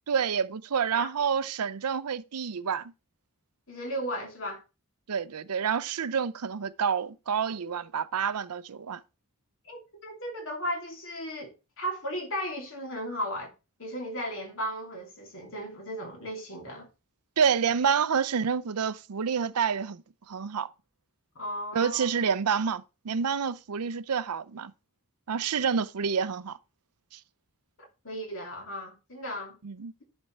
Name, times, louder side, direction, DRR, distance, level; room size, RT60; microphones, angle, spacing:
voice 1, 0.1-2.9 5.1-9.0 17.4-20.0 20.3-20.7 21.7-24.7 25.3-26.6 27.1-27.2 29.6-29.9, right 6 dB, 90° right, 0.6 m, -28 dB
voice 2, 3.7-4.6 9.6-13.5 13.8-16.9 21.3-22.1 27.8-29.6, equal, 60° left, 2.9 m, -35 dB
11.0 x 4.4 x 4.5 m
head